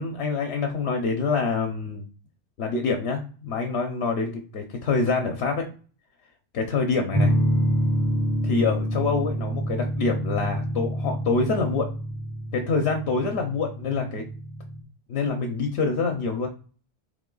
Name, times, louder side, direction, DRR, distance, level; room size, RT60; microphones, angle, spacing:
voice 1, 0.0-2.0 2.6-5.7 6.5-7.3 8.4-11.9 12.5-14.2 15.1-16.5, left 4 dB, 65° left, 4 dB, 0.9 m, -26 dB
sound 1, 7.1-14.8, equal, 5° left, 0.4 m, -27 dB
3.7 x 2.9 x 3.8 m, 0.39 s
omnidirectional pair, 1.2 m